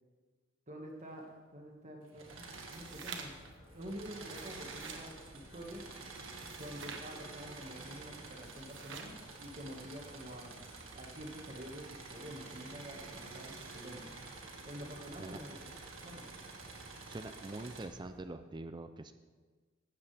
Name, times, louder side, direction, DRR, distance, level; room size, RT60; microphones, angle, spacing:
voice 1, 0.7-3.4 3.7-5.8 6.6-10.6 10.9-14.0 14.6-15.6 16.0-16.2, equal, 35° right, 1 dB, 1.8 m, -48 dB
sound 1, 2.1-18.2, equal, 55° left, 4.5 m, -58 dB
Engine / Mechanisms, 2.1-3.4 3.7-17.9, right 3 dB, 85° right, 1.9 m, -50 dB
sound 2, 2.6-3.5 4.2-5.1 6.2-7.1 8.3-9.2, right 5 dB, 65° right, 1.4 m, -48 dB
voice 2, 17.1-19.1, right 2 dB, 20° right, 9 dB, 0.4 m, -44 dB
16.0 x 12.5 x 3.5 m, 1.4 s
head